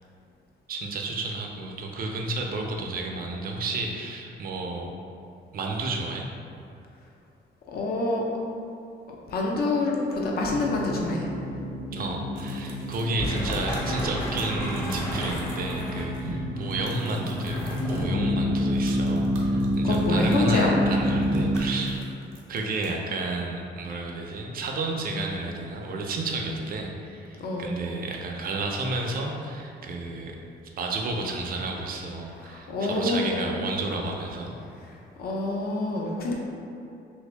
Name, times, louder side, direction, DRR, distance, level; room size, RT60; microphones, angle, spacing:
voice 1, 0.7-4.9 5.5-6.3 11.9-22.0 22.5-30.4 30.8-34.5, right 2 dB, 50° right, 1 dB, 0.5 m, -31 dB
voice 2, 7.7-8.2 9.1-11.3 19.8-20.7 22.0-22.1 27.4-27.7 32.4-33.5 34.8-36.3, left 2 dB, 50° left, -2 dB, 0.6 m, -27 dB
sound 1, 10.5-21.6, equal, 15° left, 0.6 m, -28 dB
sound 2, 12.4-16.3 16.6-18.1 18.6-20.6 21.1-22.9, right 3 dB, 85° right, 0.7 m, -48 dB
2.9 x 2.7 x 3.3 m, 2.5 s
cardioid pair, 90°, 20 cm